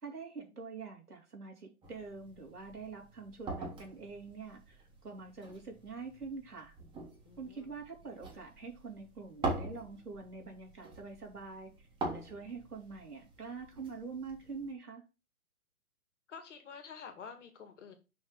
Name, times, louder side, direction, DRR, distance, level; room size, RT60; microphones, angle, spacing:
voice 1, 0.0-6.7 7.4-15.0, right 4 dB, 85° right, 3.3 m, -45 dB
sound 1, 1.8-14.7, right 2 dB, 10° right, 1.5 m, -44 dB
voice 2, 7.2-7.7 16.3-17.9, left 6 dB, 50° left, 2.1 m, -49 dB
6.2 x 4.9 x 5.1 m
figure-of-eight pair, 130°, 44 cm